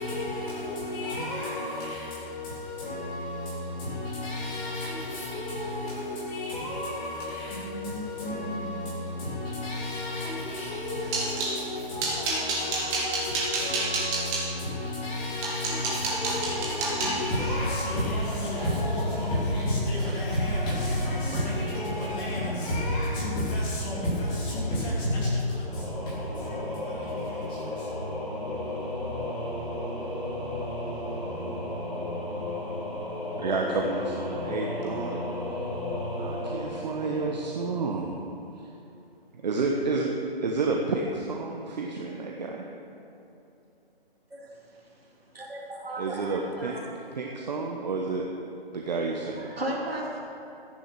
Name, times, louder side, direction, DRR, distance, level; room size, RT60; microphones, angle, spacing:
voice 1, 0.0-27.9, left 1 dB, 15° left, -8 dB, 3.2 m, -31 dB
sound 1, 10.7-11.6 12.0-14.4 15.0-15.1 15.4-19.6 20.0-20.4 20.6-20.9 21.3-21.4, right 3 dB, 15° right, 2.1 m, -31 dB
sound 2, 16.0-23.3, left 1 dB, 55° left, 2.5 m, -38 dB
Singing / Musical instrument, 25.6-38.2, left 1 dB, ahead, 0.5 m, -34 dB
voice 2, 33.4-35.2 36.2-38.1 39.3-40.1 40.4-42.6 46.0-46.8 47.1-48.2 48.7-49.5, right 3 dB, 45° right, 0 dB, 1.2 m, -30 dB
voice 3, 45.4-46.3 46.6-46.8 49.5-50.2, right 1 dB, 75° right, -2 dB, 3.2 m, -34 dB
14.0 x 10.5 x 6.1 m, 2.9 s
figure-of-eight pair, 150°, 30 cm